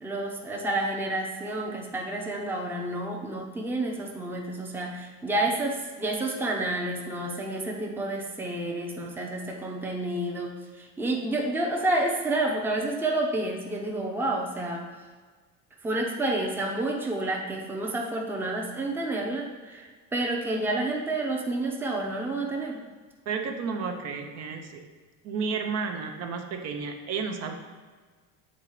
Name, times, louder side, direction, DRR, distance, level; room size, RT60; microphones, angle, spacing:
voice 1, 0.0-14.8 15.8-22.8, right 2 dB, 5° right, 0 dB, 0.7 m, -29 dB
voice 2, 23.3-24.8 25.2-27.5, right 5 dB, 50° right, 4 dB, 0.8 m, -32 dB
7.3 x 3.9 x 4.7 m, 1.5 s
cardioid pair, 135°, 32 cm